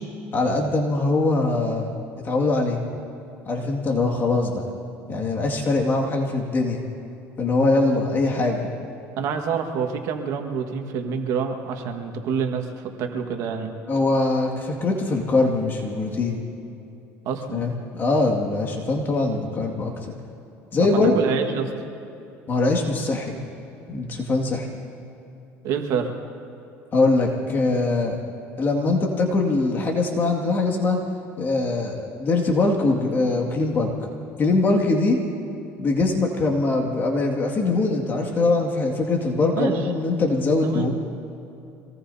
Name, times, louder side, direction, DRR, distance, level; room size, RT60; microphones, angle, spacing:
voice 1, 0.3-2.0 2.2-2.8 3.5-4.7 5.1-6.8 7.4-8.7 13.9-16.4 17.5-20.1 20.7-21.1 22.5-23.3 23.9-24.7 26.9-28.2 28.6-31.0 31.4-33.9 34.4-35.2 35.8-40.9, left 3 dB, 35° left, 0 dB, 2.2 m, -22 dB
voice 2, 9.2-13.7 17.3-17.7 20.8-21.7 25.6-26.1 36.0-36.1 39.6-39.7 40.6-40.9, right 6 dB, 65° right, 4 dB, 1.7 m, -27 dB
26.0 x 19.0 x 2.8 m, 2.8 s
cardioid pair, 115°, 6 cm